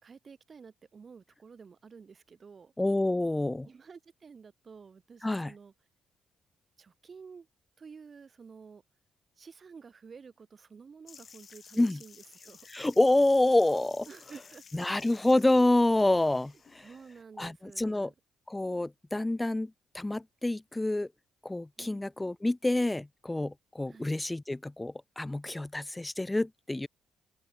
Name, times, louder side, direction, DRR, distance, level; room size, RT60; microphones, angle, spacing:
voice 1, 0.0-2.7 3.6-5.7 6.8-7.5 7.8-8.8 9.4-12.7 14.1-14.9 16.8-18.1 21.8-22.1 23.9-24.1, right 5 dB, 40° right, 3.8 m, -51 dB
voice 2, 2.8-3.7 5.2-5.5 11.8-12.0 12.7-14.1 14.7-16.9 17.4-18.1 18.5-21.1 21.4-26.9, left 2 dB, 10° left, 0.4 m, -27 dB
sound 1, 11.1-17.2, left 6 dB, 45° left, 1.2 m, -55 dB
open air
cardioid pair, 90°, 0 cm